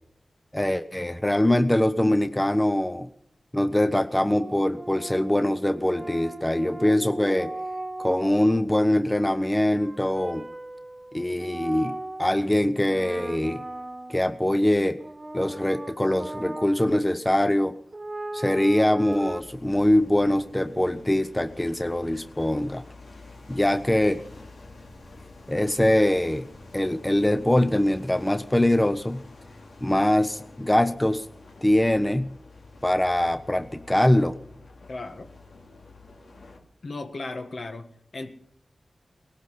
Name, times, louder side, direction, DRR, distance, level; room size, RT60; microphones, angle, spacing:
voice 1, 0.5-3.1 3.5-7.5 8.0-10.5 11.1-13.6 14.1-15.0 15.3-17.7 18.3-22.8 23.5-24.2 25.5-26.5 26.7-29.2 29.8-31.3 31.6-32.3 32.8-34.4, left 1 dB, 15° left, 0.7 m, -23 dB
sound 1, 4.2-8.5 9.5-12.5 12.8-14.4 15.0-16.9 17.9-19.4, right 2 dB, 30° right, 1.3 m, -38 dB
sound 2, 19.1-36.6, left 2 dB, 85° left, 2.5 m, -48 dB
voice 2, 34.9-35.3 36.8-38.3, left 2 dB, 65° left, 1.6 m, -36 dB
18.5 x 11.5 x 5.7 m
cardioid pair, 55°, 0 cm